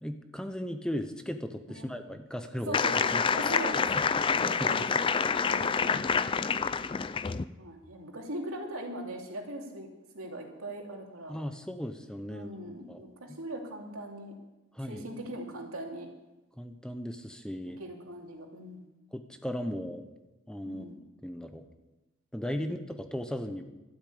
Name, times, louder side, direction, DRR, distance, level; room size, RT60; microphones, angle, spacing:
voice 1, 0.0-2.8 3.1-3.2 4.3-4.7 11.3-12.5 12.9-13.0 14.7-15.1 16.6-17.8 19.1-20.0 20.5-20.8 21.2-21.6 22.3-23.6, equal, 5° left, 8 dB, 0.7 m, -36 dB
sound 1, 2.7-7.4, left 5 dB, 25° left, 0.3 m, -27 dB
voice 2, 2.7-4.9 5.5-6.1 7.6-9.9 10.1-11.3 12.3-14.4 14.8-16.1 17.8-18.8 20.6-21.0, right 1 dB, 85° right, 1 dB, 2.7 m, -40 dB
12.5 x 8.4 x 8.5 m, 1.0 s
head